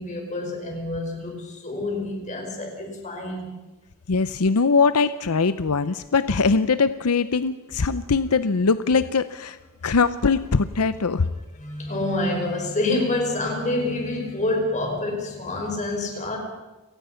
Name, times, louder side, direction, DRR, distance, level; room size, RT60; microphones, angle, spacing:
voice 1, 0.0-3.5 11.6-16.4, left 2 dB, 35° left, 2 dB, 5.6 m, -27 dB
voice 2, 4.1-9.6 9.8-11.3, left 4 dB, 85° left, 13 dB, 0.7 m, -21 dB
29.5 x 18.5 x 5.8 m, 1.1 s
head